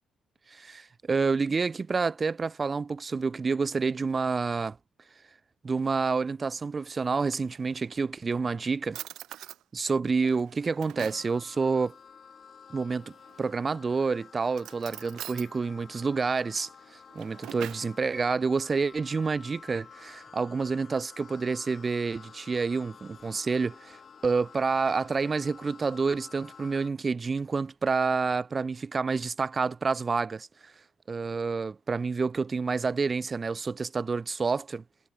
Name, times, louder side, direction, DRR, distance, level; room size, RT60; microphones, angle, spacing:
voice 1, 0.5-4.8 5.6-9.0 9.7-12.0 12.7-16.7 17.2-30.7 31.1-34.8, right 4 dB, 30° right, 0.5 m, -28 dB
Drawer open or close, 7.0-8.0 8.5-8.6 8.9-9.6 10.2-11.3 13.2-13.7 14.5-15.5 16.9-17.9, right 13 dB, 85° right, 3.1 m, -43 dB
sound 1, 11.1-26.9, left 6 dB, 45° left, 2.7 m, -51 dB
cardioid pair, 115°, 0 cm